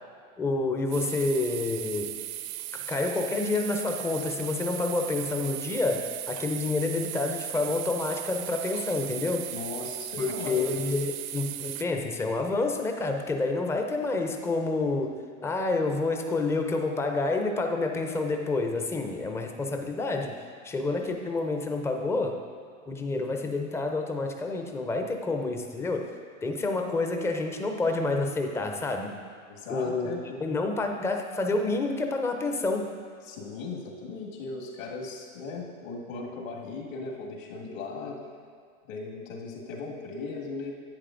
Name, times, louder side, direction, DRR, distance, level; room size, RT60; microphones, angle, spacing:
voice 1, 0.4-2.1 2.7-9.5 10.2-22.4 22.9-29.1 29.7-32.9, left 3 dB, 5° left, 4 dB, 0.4 m, -29 dB
sound 1, 0.9-11.8, right 13 dB, 50° right, 0.5 m, -37 dB
voice 2, 9.5-10.8 29.5-30.4 33.2-38.2 38.8-40.7, left 4 dB, 70° left, -1 dB, 1.9 m, -37 dB
10.5 x 8.4 x 2.5 m, 2.2 s
hypercardioid pair, 105°, 41 cm